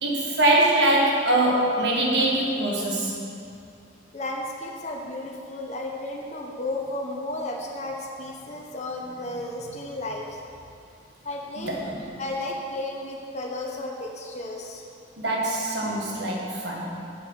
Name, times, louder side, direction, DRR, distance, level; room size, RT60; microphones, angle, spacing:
voice 1, 0.0-3.2 11.6-12.1 15.2-17.0, right 1 dB, 70° right, -3 dB, 1.7 m, -23 dB
voice 2, 4.1-10.4 11.2-11.8 12.2-14.8, left 1 dB, 40° left, -1 dB, 0.8 m, -33 dB
7.6 x 6.8 x 6.2 m, 2.5 s
head